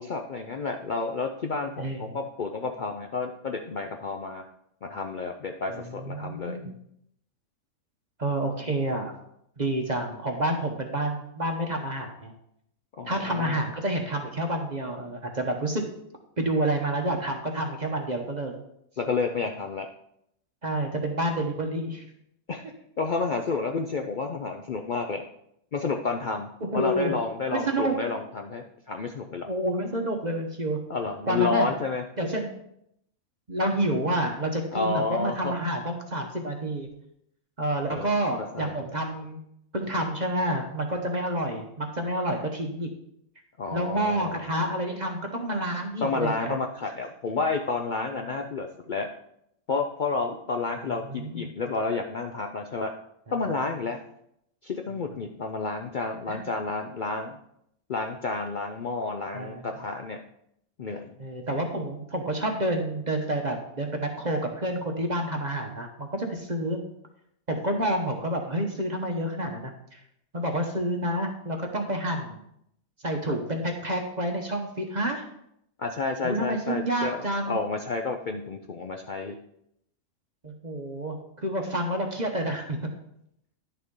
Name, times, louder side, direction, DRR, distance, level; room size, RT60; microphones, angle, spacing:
voice 1, 0.0-4.4 4.8-6.6 13.0-13.6 19.0-19.9 22.5-22.6 23.0-25.3 25.7-29.5 30.9-32.0 34.7-35.5 37.9-38.1 38.5-38.8 43.6-44.5 46.0-49.1 49.7-52.9 53.3-54.0 54.6-57.4 57.9-60.2 60.8-61.1 75.8-79.4, left 4 dB, 70° left, 4 dB, 0.4 m, -30 dB
voice 2, 1.8-2.2 5.7-6.7 8.2-9.1 9.6-12.3 13.1-15.8 16.4-18.5 20.6-22.0 26.6-27.1 27.5-28.0 29.5-30.8 31.3-31.7 32.2-32.5 33.5-36.9 37.6-39.4 39.7-42.9 43.7-46.6 50.9-51.5 56.3-56.5 59.3-59.6 61.2-66.8 67.5-70.0 70.3-72.4 73.0-75.2 76.2-77.6 80.4-82.9, right 1 dB, 35° right, 3 dB, 0.9 m, -29 dB
10.5 x 6.6 x 3.7 m, 0.75 s
omnidirectional pair, 1.6 m